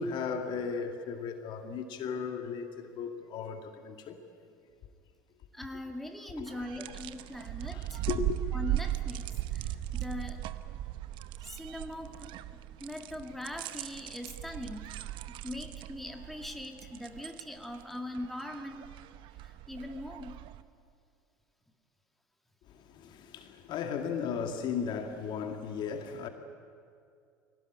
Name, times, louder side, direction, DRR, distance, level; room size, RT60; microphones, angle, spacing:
voice 1, 0.0-4.2 6.4-6.5 7.7-8.4 22.7-26.3, left 6 dB, 50° left, 2.1 m, -36 dB
voice 2, 5.5-8.0 8.5-9.3 9.5-10.4 11.4-15.0 15.3-18.9 19.4-20.4, left 1 dB, ahead, 2.2 m, -41 dB
sound 1, 6.5-20.6, right 14 dB, 55° right, 0.9 m, -38 dB
22.5 x 18.0 x 9.8 m
hypercardioid pair, 75°, 10 cm